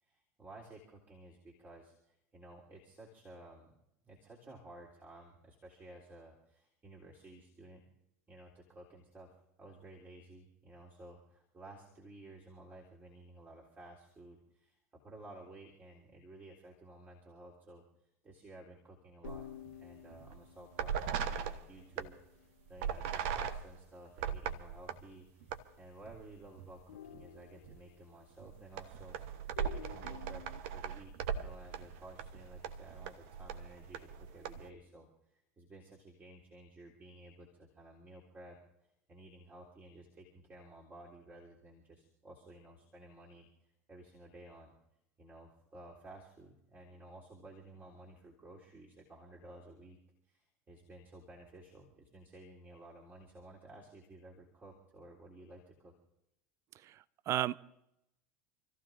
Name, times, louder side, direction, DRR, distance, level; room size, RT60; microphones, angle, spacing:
voice 1, 0.0-3.7 4.0-7.8 8.3-19.5 19.7-22.2 22.7-30.4 30.7-38.6 39.1-44.7 45.2-50.0 50.2-55.9, right 2 dB, 25° right, -2 dB, 3.3 m, -54 dB
sound 1, 19.2-24.3 24.6-24.7 25.0-25.4 25.7-26.4 26.7-29.0 29.5-30.6, left 10 dB, 75° left, 0.8 m, -53 dB
sound 2, 19.2-19.8 20.1-20.4 20.7-22.1 22.8-25.0 25.4-25.6 26.0-26.8 27.1-27.3 27.6-27.8 28.4-34.7, right 8 dB, 60° right, 1.2 m, -39 dB
voice 2, 56.8-57.6, right 13 dB, 40° right, 18 dB, 0.6 m, -34 dB
29.0 x 14.5 x 2.6 m, 0.84 s
figure-of-eight pair, 80°, 8 cm